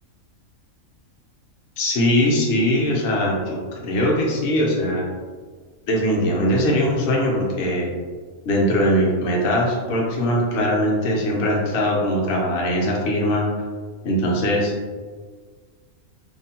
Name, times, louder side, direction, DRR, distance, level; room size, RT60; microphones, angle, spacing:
voice 1, 1.8-5.0 5.9-7.9 8.5-13.5 14.0-14.7, equal, 60° left, -2 dB, 0.7 m, -21 dB
2.6 x 2.0 x 2.8 m, 1.5 s
omnidirectional pair, 1.5 m